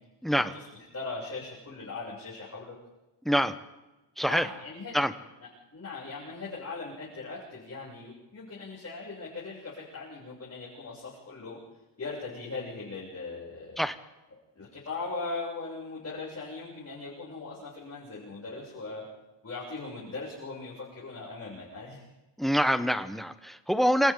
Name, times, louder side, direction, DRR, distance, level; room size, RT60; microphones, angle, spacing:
voice 1, 0.3-2.7 4.2-4.9 5.4-11.6 12.0-13.8 14.6-19.0 19.4-22.1, left 3 dB, 35° left, -6 dB, 7.6 m, -39 dB
voice 2, 4.2-4.5 4.9-5.1 13.8-13.9 22.4-24.1, equal, ahead, 10 dB, 1.1 m, -25 dB
28.5 x 27.5 x 3.9 m, 1.1 s
wide cardioid pair, 135°, 44 cm